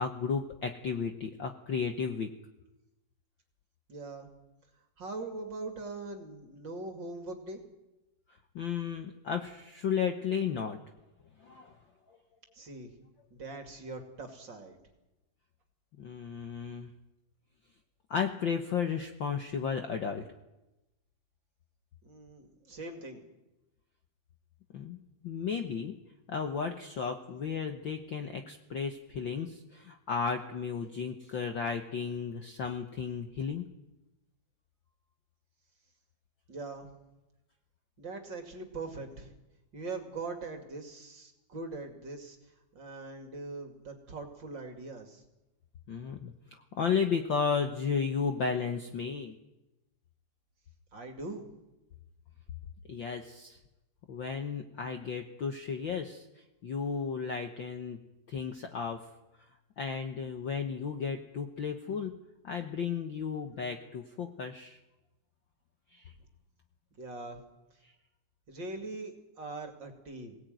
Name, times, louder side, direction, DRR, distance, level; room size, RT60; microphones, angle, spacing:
voice 1, 0.0-2.3 8.5-10.8 11.4-11.8 12.1-12.2 16.0-16.9 18.1-20.3 24.7-25.0 25.2-26.0 26.3-33.7 45.9-46.3 46.7-49.4 52.9-53.6 54.1-56.2 56.6-58.0 58.3-59.0 59.8-62.2 62.4-64.8 65.9-66.1, left 6 dB, 55° left, 5 dB, 1.4 m, -34 dB
voice 2, 3.9-4.3 5.0-7.6 12.5-13.0 13.3-14.8 22.0-23.2 36.5-36.9 38.0-39.3 39.7-45.2 50.9-51.5 67.0-67.4 68.5-70.3, right 3 dB, 40° right, 4 dB, 2.8 m, -42 dB
22.0 x 18.0 x 9.2 m, 0.99 s
omnidirectional pair, 3.4 m